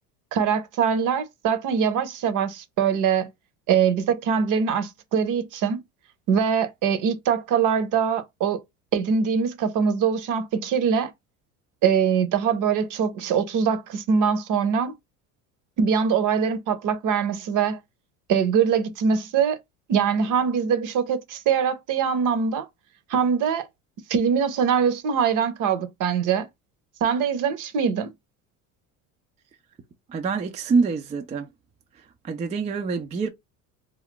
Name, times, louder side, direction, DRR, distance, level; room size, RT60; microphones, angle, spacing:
voice 1, 0.3-3.3 3.7-5.8 6.3-8.6 8.9-11.1 11.8-14.9 15.8-17.8 18.3-19.6 19.9-22.7 23.1-23.7 24.1-26.5 27.0-28.1, right 7 dB, 50° right, 0.8 m, -23 dB
voice 2, 30.1-31.5 32.2-33.3, right 4 dB, 20° right, 0.3 m, -25 dB
2.4 x 2.2 x 3.7 m
supercardioid pair, 90°, 39 cm